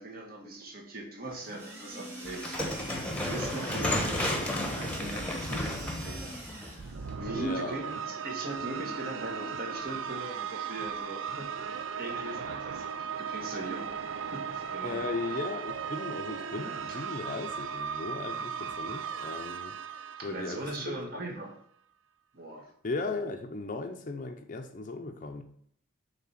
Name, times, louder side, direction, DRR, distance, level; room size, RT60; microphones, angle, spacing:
voice 1, 0.0-6.4 6.7-6.8 7.2-13.9 14.2-15.0 16.9-17.0 20.2-21.6 22.3-22.7, right 2 dB, 50° right, 1.6 m, -40 dB
sound 1, 1.3-7.2, right 3 dB, 15° right, 1.8 m, -45 dB
sound 2, 2.2-7.4, left 1 dB, 5° left, 1.0 m, -33 dB
sound 3, 6.8-21.2, right 7 dB, 75° right, 0.5 m, -37 dB
voice 2, 7.3-8.1 14.8-21.0 22.8-25.4, left 3 dB, 40° left, 0.6 m, -37 dB
7.3 x 3.4 x 5.8 m
head